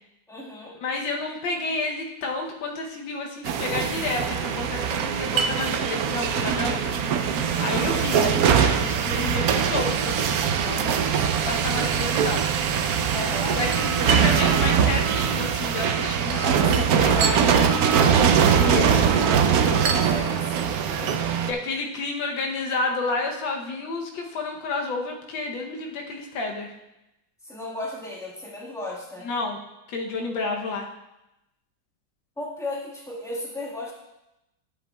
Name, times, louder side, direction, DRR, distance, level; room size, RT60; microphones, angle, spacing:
voice 1, 0.3-0.8 7.6-8.0 13.1-13.6 16.3-18.6 19.6-21.2 27.4-29.3 32.4-33.9, left 2 dB, ahead, -5 dB, 1.2 m, -36 dB
voice 2, 0.8-7.0 7.6-10.9 11.5-12.4 13.5-17.4 18.6-19.2 19.6-20.0 21.5-26.7 29.2-29.6 29.9-30.9, left 3 dB, 90° left, 1 dB, 1.6 m, -30 dB
sound 1, 3.4-21.5, right 7 dB, 70° right, 0.9 m, -22 dB
12.5 x 7.9 x 2.3 m, 0.93 s
omnidirectional pair, 2.0 m